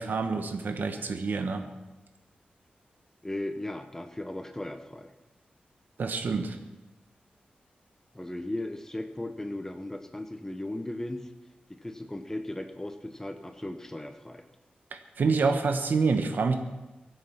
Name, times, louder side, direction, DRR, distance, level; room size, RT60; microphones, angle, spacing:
voice 1, 0.0-1.6 6.0-6.6 14.9-16.5, right 4 dB, 70° right, 6 dB, 1.3 m, -27 dB
voice 2, 3.2-5.1 8.1-11.3 11.7-14.4, left 1 dB, 15° left, 8 dB, 1.1 m, -37 dB
23.5 x 7.9 x 5.8 m, 1.1 s
wide cardioid pair, 75°, 3 cm